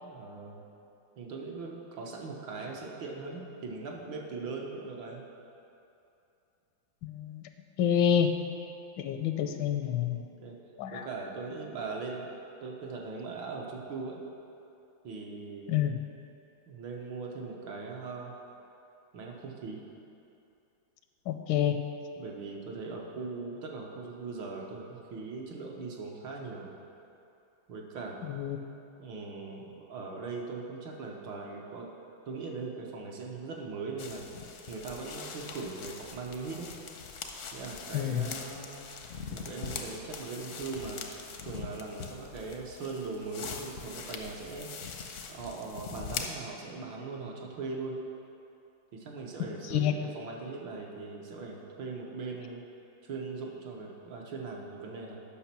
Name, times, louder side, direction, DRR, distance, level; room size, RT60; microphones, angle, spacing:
voice 1, 0.0-0.7 1.2-5.2 9.5-9.6 10.1-10.6 10.9-12.3 12.6-14.2 15.0-15.7 16.7-18.3 19.1-19.8 22.2-26.7 27.7-28.2 29.0-31.9 32.3-34.2 34.7-36.7 37.5-39.0 39.3-41.0 41.5-44.7 45.3-48.0 48.9-52.6 53.0-55.2, right 4 dB, 75° right, -1 dB, 1.7 m, -40 dB
voice 2, 7.0-7.4 7.8-8.4 9.0-10.2 10.8-11.1 15.7-16.0 21.3-21.8 28.3-28.6 37.9-38.2 49.7-49.9, left 9 dB, 80° left, 7 dB, 1.3 m, -27 dB
sound 1, 34.0-46.3, left 6 dB, 65° left, 0.7 m, -42 dB
8.4 x 5.9 x 5.9 m, 2.8 s
omnidirectional pair, 2.1 m